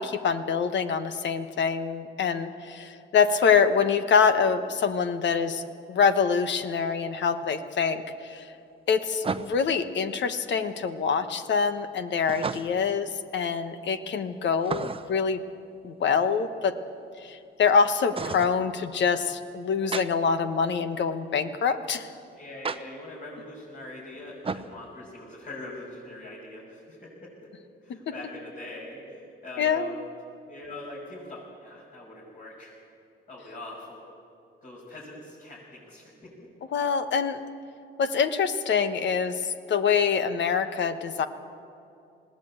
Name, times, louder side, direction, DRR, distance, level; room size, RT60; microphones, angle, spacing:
voice 1, 0.0-5.6 5.9-8.5 8.9-15.4 15.8-16.8 17.2-22.1 29.6-29.9 36.7-37.4 38.0-41.3, left 6 dB, 65° left, 10 dB, 1.3 m, -25 dB
sound 1, 6.6-6.7 9.2-9.8 12.3-12.9 14.6-15.2 18.1-18.6 19.9-20.1 22.6-22.8 24.4-24.7, right 4 dB, 30° right, 0.9 m, -32 dB
voice 2, 22.3-27.5 27.8-30.0 30.5-32.7 33.3-34.1 34.6-36.3, left 2 dB, 45° left, -6 dB, 6.5 m, -42 dB
20.0 x 17.0 x 8.9 m, 2.6 s
cardioid pair, 90°, 20 cm